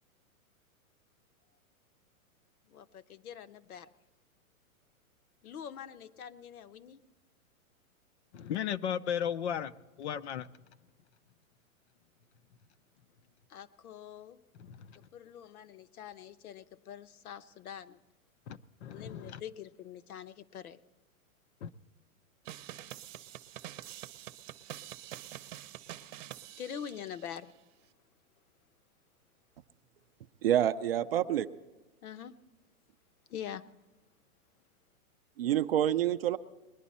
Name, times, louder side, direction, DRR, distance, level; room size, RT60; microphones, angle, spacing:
voice 1, 2.7-3.9 5.4-7.0 13.5-14.4 15.1-18.0 18.9-20.8 26.6-27.5 32.0-32.4 33.3-33.6, left 9 dB, 85° left, 12 dB, 0.9 m, -44 dB
voice 2, 8.3-10.5 14.6-15.0 18.5-19.4 21.6-21.7, left 9 dB, 50° left, 13 dB, 0.6 m, -36 dB
sound 1, 22.5-27.4, right 12 dB, 60° right, 0.9 m, -46 dB
voice 3, 30.4-31.5 35.4-36.4, right 11 dB, 45° right, 11 dB, 0.5 m, -27 dB
20.5 x 11.0 x 4.2 m, 1.2 s
hypercardioid pair, 165°, 43 cm